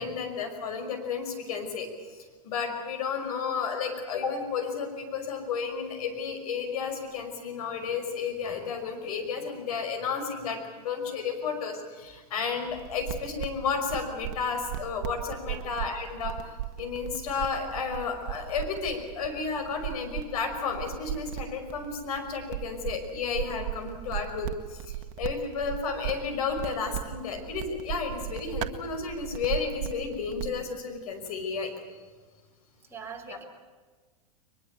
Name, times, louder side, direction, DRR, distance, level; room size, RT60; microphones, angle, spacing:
voice 1, 0.0-16.4 16.8-31.7 33.3-33.4, left 5 dB, 70° left, 6 dB, 5.6 m, -32 dB
sound 1, 12.7-30.6, right 13 dB, 55° right, 1.5 m, -38 dB
voice 2, 32.9-33.4, right 6 dB, 10° right, 0 dB, 3.9 m, -42 dB
22.0 x 21.5 x 8.4 m, 1.4 s
hypercardioid pair, 115°, 20 cm